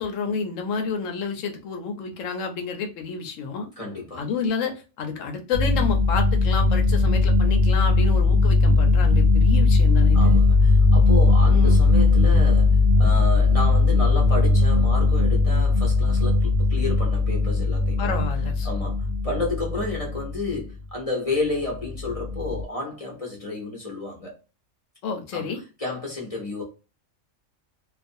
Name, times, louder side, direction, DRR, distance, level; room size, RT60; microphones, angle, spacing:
voice 1, 0.0-3.7 4.2-10.4 11.5-11.8 18.0-18.7 25.0-25.6, left 5 dB, 70° left, 1.0 m, -29 dB
voice 2, 3.8-4.2 10.1-18.2 18.6-24.4 25.3-25.5 25.8-26.6, left 2 dB, 35° left, 0.7 m, -31 dB
sound 1, 5.5-20.6 21.8-22.6, left 3 dB, 80° right, 0.4 m, -19 dB
2.4 x 2.4 x 2.5 m
omnidirectional pair, 1.4 m